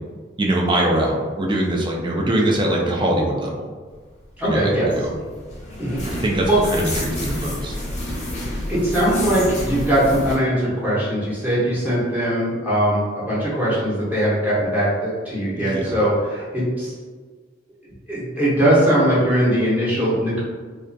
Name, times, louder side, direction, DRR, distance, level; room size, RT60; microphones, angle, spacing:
voice 1, 0.4-3.7 4.4-5.1 6.0-7.7 15.6-15.9, right 1 dB, 25° right, -1 dB, 0.3 m, -22 dB
sound 1, 4.4-10.4, left 1 dB, 40° left, 0.6 m, -29 dB
voice 2, 4.4-4.9 5.8-6.0 6.5-6.6 8.7-16.9 18.1-20.4, right 1 dB, 10° right, -9 dB, 0.7 m, -20 dB
2.3 x 2.2 x 2.5 m, 1.5 s
head